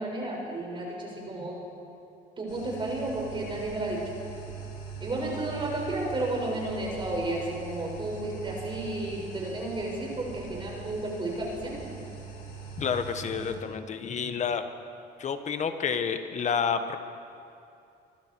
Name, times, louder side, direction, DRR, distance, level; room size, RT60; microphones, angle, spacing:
voice 1, 0.0-1.5 2.4-4.0 5.0-11.8, right 2 dB, 30° right, -2 dB, 6.4 m, -32 dB
sound 1, 2.5-13.5, right 4 dB, 80° left, 5.8 m, -42 dB
voice 2, 12.8-14.6 15.2-17.0, left 6 dB, 45° left, 8 dB, 1.5 m, -29 dB
25.5 x 24.0 x 4.8 m, 2.6 s
cardioid pair, 110°, 17 cm